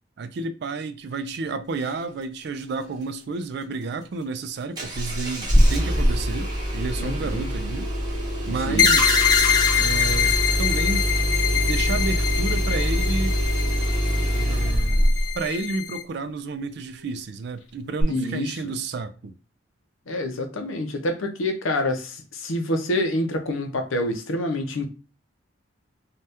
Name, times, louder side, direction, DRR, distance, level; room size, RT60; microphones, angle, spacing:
voice 1, 0.2-7.9 8.5-9.3 9.8-11.1 11.5-13.4 14.3-15.1 15.3-19.3, right 3 dB, 55° right, 0.3 m, -31 dB
Engine starting, 4.8-15.4 18.0-18.1, equal, 20° right, 0.8 m, -24 dB
voice 2, 7.0-7.5 8.7-8.9 18.1-18.7 20.1-24.9, left 1 dB, 80° left, 0.6 m, -27 dB
sound 1, 8.8-16.0, left 7 dB, 20° left, 0.5 m, -24 dB
2.7 x 2.3 x 3.3 m
head